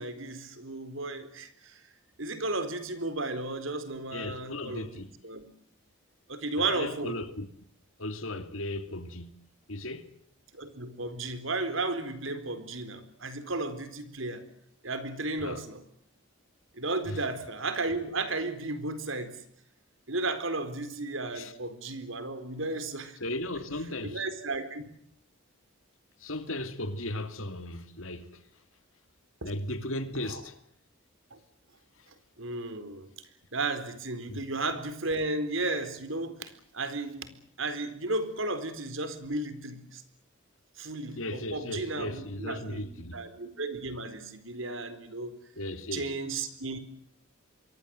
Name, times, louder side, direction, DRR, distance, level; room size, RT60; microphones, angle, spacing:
voice 1, 0.0-1.8 2.2-5.5 6.3-7.2 10.5-14.4 14.8-15.8 16.8-19.4 20.1-23.2 24.0-24.9 29.4-29.5 30.2-30.4 31.3-31.4 32.4-33.1 33.5-37.3 37.6-40.0 40.8-42.8 43.1-45.3 45.9-46.8, right 2 dB, 70° right, 4.2 m, -34 dB
voice 2, 4.1-5.1 6.6-7.5 8.0-9.3 9.7-10.1 15.4-15.6 17.0-17.2 21.3-21.5 23.2-24.2 26.2-28.3 29.4-30.5 34.3-34.4 41.2-43.2 45.6-46.1, left 1 dB, 75° left, 2.7 m, -36 dB
27.0 x 23.5 x 7.8 m
head